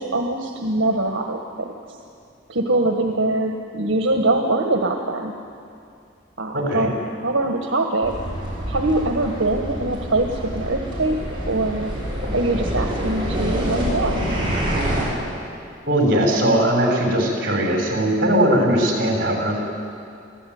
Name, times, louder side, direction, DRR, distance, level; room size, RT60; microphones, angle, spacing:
voice 1, 0.0-1.7 2.5-5.3 6.4-6.9 7.2-8.1 8.7-11.9 12.3-14.2, right 2 dB, 75° right, 3 dB, 1.5 m, -23 dB
voice 2, 6.5-6.9 15.9-19.7, right 1 dB, 50° right, 0 dB, 5.9 m, -19 dB
sound 1, 8.0-15.0, equal, 25° right, 7.4 m, -26 dB
25.0 x 16.0 x 9.5 m, 2.5 s
head